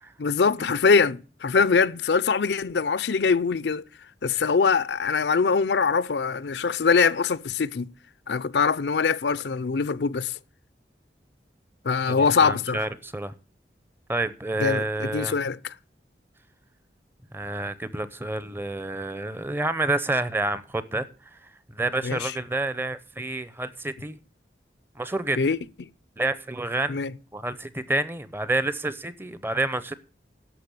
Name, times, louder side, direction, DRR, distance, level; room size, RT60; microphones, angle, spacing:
voice 1, 0.2-3.8 4.2-7.9 8.3-10.3 11.8-12.8 14.6-15.7 22.0-22.3 25.4-25.6 26.9-27.1, left 5 dB, 75° left, 0.5 m, -23 dB
voice 2, 12.1-13.3 14.1-15.4 17.3-21.1 21.7-24.2 25.0-25.4 26.2-27.0 27.3-29.9, right 2 dB, 10° right, 0.7 m, -28 dB
12.0 x 6.7 x 8.3 m
head